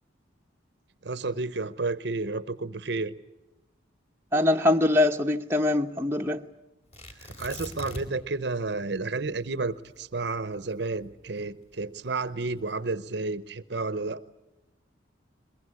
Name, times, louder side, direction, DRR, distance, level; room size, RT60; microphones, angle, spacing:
voice 1, 1.0-3.1 7.2-14.2, right 3 dB, 60° right, 16 dB, 0.8 m, -31 dB
voice 2, 4.3-6.4, left 2 dB, 10° right, 3 dB, 0.9 m, -23 dB
Tearing, 6.9-8.3 8.6-8.7 9.2-11.6 12.3-12.8, equal, 35° left, 3.6 m, -41 dB
22.0 x 22.0 x 9.7 m, 0.98 s
head